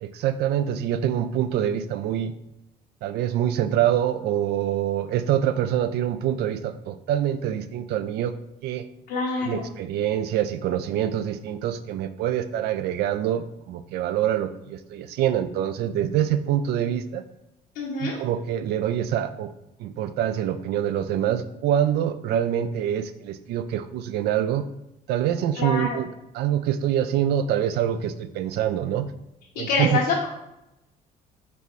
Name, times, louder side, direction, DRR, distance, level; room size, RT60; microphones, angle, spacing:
voice 1, 0.0-2.3 3.0-8.3 8.6-8.8 9.4-17.2 18.0-19.5 19.8-24.7 25.1-26.1 26.3-29.1 29.6-30.0, right 10 dB, 75° right, 12 dB, 0.4 m, -25 dB
voice 2, 9.1-9.7 17.7-18.2 25.5-26.0 29.5-30.2, left 3 dB, 90° left, -6 dB, 0.9 m, -26 dB
4.2 x 2.8 x 4.6 m, 0.88 s
cardioid pair, 110°, 17 cm